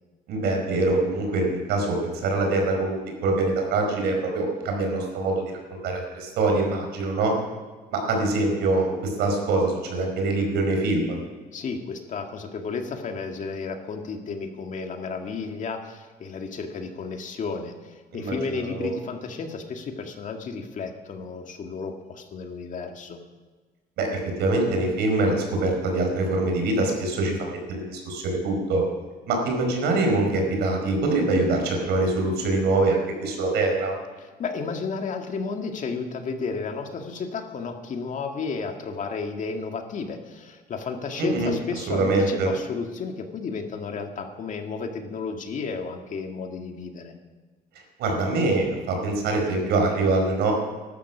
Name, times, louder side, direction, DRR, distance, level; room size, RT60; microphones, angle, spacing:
voice 1, 0.3-7.3 7.9-11.2 18.1-18.9 24.0-28.8 29.3-33.9 41.2-41.5 41.9-42.5 48.0-50.5, right 2 dB, 80° right, 2 dB, 4.9 m, -24 dB
voice 2, 11.5-23.2 34.2-47.1, left 4 dB, 50° left, 4 dB, 2.0 m, -33 dB
15.0 x 12.0 x 6.2 m, 1.4 s
cardioid pair, 110°, 17 cm